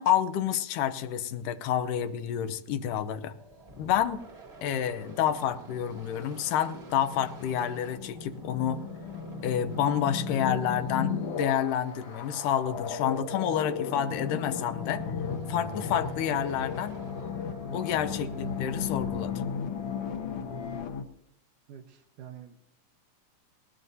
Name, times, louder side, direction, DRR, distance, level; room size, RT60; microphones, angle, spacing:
voice 1, 0.0-3.3 3.8-4.2 4.6-8.8 9.4-15.0 15.5-17.0 17.7-19.3, left 9 dB, 90° left, 10 dB, 2.4 m, -29 dB
sound 1, 3.3-19.3, right 2 dB, 40° right, 0.9 m, -50 dB
Unseen Company, 4.6-21.0, left 6 dB, 65° left, 1.5 m, -35 dB
voice 2, 21.7-22.6, right 9 dB, 80° right, 3 dB, 2.5 m, -47 dB
20.0 x 19.0 x 2.7 m, 0.79 s
omnidirectional pair, 3.7 m